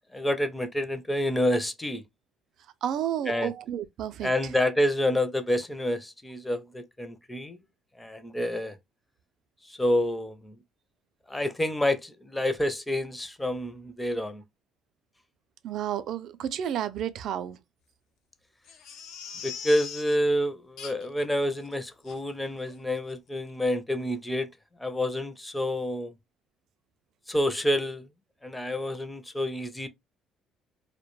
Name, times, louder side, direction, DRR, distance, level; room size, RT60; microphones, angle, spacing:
voice 1, 0.1-2.0 3.3-3.5 4.2-7.6 8.0-8.8 9.7-10.5 11.3-14.4 19.4-24.5 24.8-26.1 27.3-28.1 28.4-29.9, left 1 dB, 10° left, 0.5 m, -28 dB
voice 2, 2.8-4.3 15.6-17.6, right 10 dB, 65° right, 0.3 m, -31 dB
Crying sobbing, 18.7-20.2 20.8-21.2 21.6-21.7 22.1-22.2 22.7-22.8 23.1-23.2, left 7 dB, 70° left, 0.5 m, -41 dB
2.2 x 2.1 x 2.9 m
supercardioid pair, 70°, 0 cm